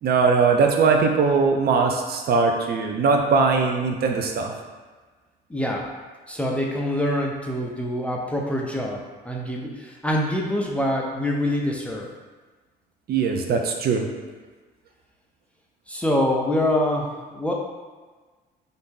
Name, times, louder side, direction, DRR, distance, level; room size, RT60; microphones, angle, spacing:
voice 1, 0.0-4.5 13.1-14.1, right 4 dB, 50° right, 3 dB, 0.5 m, -20 dB
voice 2, 5.5-5.9 6.3-12.1 15.9-17.5, left 1 dB, 5° left, -1 dB, 0.4 m, -25 dB
2.6 x 2.5 x 3.6 m, 1.3 s
cardioid pair, 95°, 20 cm